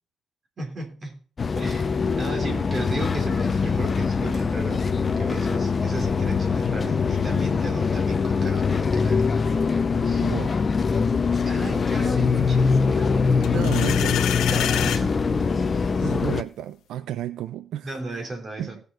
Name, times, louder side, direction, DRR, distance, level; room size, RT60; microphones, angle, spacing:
voice 1, 0.6-1.2 1.6-10.3 10.8-13.6 14.4-16.0 17.8-18.8, right 2 dB, 30° right, 3.3 m, -36 dB
sound 1, 1.4-16.4, left 5 dB, 30° left, 0.7 m, -23 dB
sound 2, 6.0-10.2, left 10 dB, 70° left, 0.7 m, -39 dB
voice 2, 10.2-10.7 13.5-14.4 16.0-18.2 18.6-18.8, right 11 dB, 80° right, 0.6 m, -32 dB
sound 3, 13.4-15.0, left 10 dB, 90° left, 1.2 m, -28 dB
17.5 x 6.7 x 4.0 m
cardioid pair, 150°, 0 cm